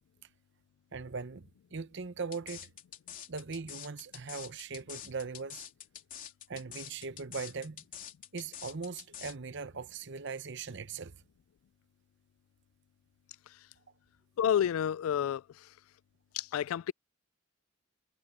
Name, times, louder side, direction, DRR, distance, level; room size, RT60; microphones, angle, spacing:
voice 1, 0.9-2.7 3.3-5.6 6.5-7.8 8.3-11.2, right 4 dB, 60° right, 0.9 m, -40 dB
sound 1, 2.3-9.3, left 10 dB, 40° left, 3.5 m, -46 dB
voice 2, 14.4-15.4 16.3-16.9, left 9 dB, 85° left, 0.3 m, -29 dB
head